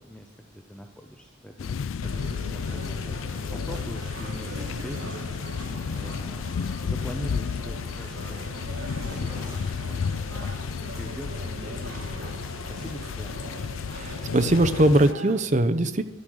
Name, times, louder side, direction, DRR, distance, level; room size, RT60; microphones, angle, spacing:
voice 1, 0.0-3.2 3.5-5.4 5.7-6.5 6.8-10.6 11.0-13.7, equal, 5° left, 3 dB, 0.8 m, -43 dB
sound 1, 1.6-15.1, left 6 dB, 75° left, 0.4 m, -32 dB
sound 2, 2.0-15.4, right 3 dB, 90° right, 1.6 m, -42 dB
sound 3, 2.6-14.8, right 1 dB, 15° right, 5.3 m, -51 dB
voice 2, 13.9-16.0, right 1 dB, 35° right, 10 dB, 0.8 m, -21 dB
12.5 x 11.5 x 6.4 m, 0.91 s
head